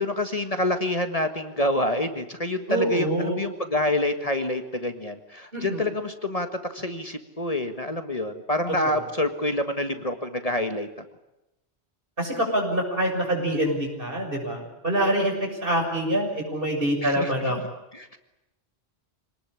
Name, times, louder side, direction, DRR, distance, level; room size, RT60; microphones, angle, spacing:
voice 1, 0.0-10.9 17.0-17.6 17.9-18.2, left 1 dB, 35° left, 7 dB, 1.8 m, -27 dB
voice 2, 2.7-3.4 5.5-5.8 12.2-15.3 15.6-17.6, right 1 dB, 55° right, 2 dB, 7.0 m, -25 dB
26.5 x 19.5 x 10.0 m, 0.94 s
omnidirectional pair, 1.1 m